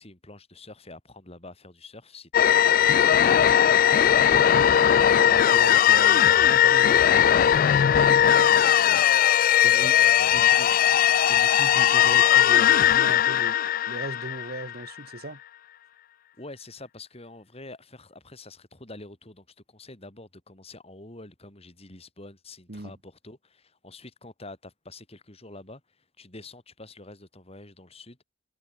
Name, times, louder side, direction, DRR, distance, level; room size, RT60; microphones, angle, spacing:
voice 1, 0.0-3.8 8.9-9.1 9.8-10.9 16.4-28.2, left 2 dB, 35° left, 4.1 m, -46 dB
sound 1, 2.3-14.8, left 10 dB, 50° left, 0.3 m, -19 dB
voice 2, 4.3-4.7 5.1-7.8 9.6-10.0 10.3-10.7 11.3-13.6 13.9-15.4 22.7-22.9, right 2 dB, 55° right, 1.7 m, -38 dB
head